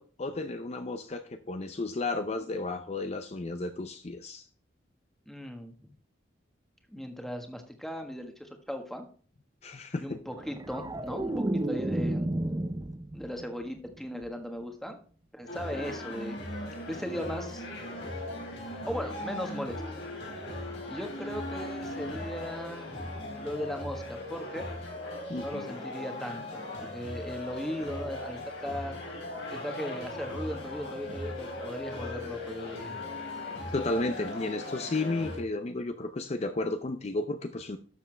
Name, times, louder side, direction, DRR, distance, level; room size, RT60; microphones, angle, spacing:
voice 1, 0.0-4.5 9.6-10.2 25.3-25.7 33.7-37.8, left 2 dB, 35° left, 8 dB, 0.5 m, -33 dB
voice 2, 5.3-5.8 6.9-9.1 10.0-12.3 13.1-15.0 15.3-16.4 16.9-17.7 18.9-19.8 20.9-24.7 25.4-29.0 29.5-33.0, equal, ahead, 5 dB, 1.4 m, -38 dB
sound 1, 10.3-13.5 13.9-14.2, right 1 dB, 20° right, 0.6 m, -32 dB
sound 2, 15.5-35.4, left 2 dB, 70° left, 4.0 m, -38 dB
12.0 x 7.0 x 3.3 m, 0.42 s
head